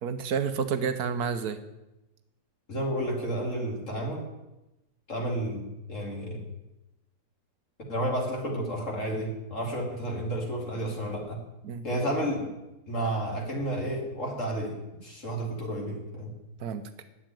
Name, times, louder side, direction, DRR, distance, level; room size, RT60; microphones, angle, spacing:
voice 1, 0.0-1.6 11.6-11.8 16.6-16.9, right 6 dB, 70° right, 10 dB, 1.3 m, -30 dB
voice 2, 2.7-4.3 5.1-6.4 7.9-11.4 11.8-12.5 12.9-14.8 15.0-16.3, right 1 dB, 50° left, 0 dB, 2.7 m, -31 dB
9.6 x 7.6 x 8.9 m, 0.96 s
omnidirectional pair, 1.7 m